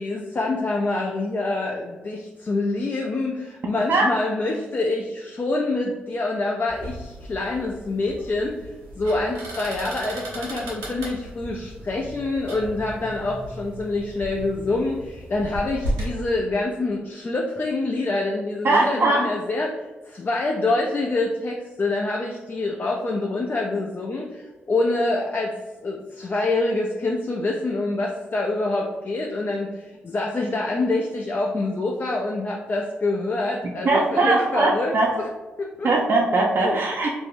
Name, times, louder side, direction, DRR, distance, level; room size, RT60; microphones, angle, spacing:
voice 1, 0.0-34.9 35.2-35.3 35.6-35.9 36.6-36.8, left 2 dB, 40° left, 0 dB, 0.4 m, -26 dB
sound 1, 6.7-16.1, right 1 dB, 85° right, 0.7 m, -35 dB
voice 2, 18.6-19.3 33.8-35.1 35.8-37.1, right 2 dB, 45° right, -1 dB, 0.4 m, -20 dB
2.5 x 2.1 x 3.3 m, 1.2 s
hypercardioid pair, 45°, 5 cm